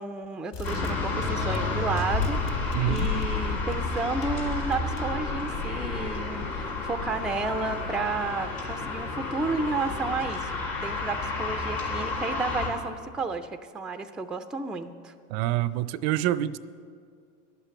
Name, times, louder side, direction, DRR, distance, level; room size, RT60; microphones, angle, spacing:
voice 1, 0.0-10.5 10.8-15.1, right 3 dB, ahead, 0.4 m, -32 dB
sound 1, 0.5-5.3, left 5 dB, 55° left, 1.1 m, -38 dB
sound 2, 0.6-12.7, left 3 dB, 85° left, 3.2 m, -30 dB
voice 2, 2.7-3.1 15.3-16.6, right 14 dB, 55° right, 0.5 m, -26 dB
11.5 x 8.5 x 6.9 m
hypercardioid pair, 90°, 39 cm